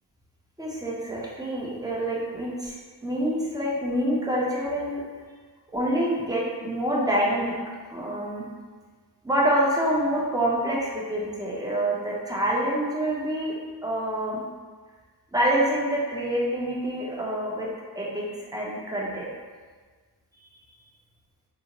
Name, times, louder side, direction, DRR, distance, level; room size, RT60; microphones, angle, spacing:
voice 1, 0.6-2.7 3.0-5.0 5.7-7.5 7.9-8.4 9.2-13.5 13.8-14.4 15.3-17.7 17.9-18.3 18.5-19.2, right 1 dB, 10° right, -5 dB, 0.7 m, -26 dB
3.8 x 2.0 x 2.9 m, 1.5 s
wide cardioid pair, 40°, 42 cm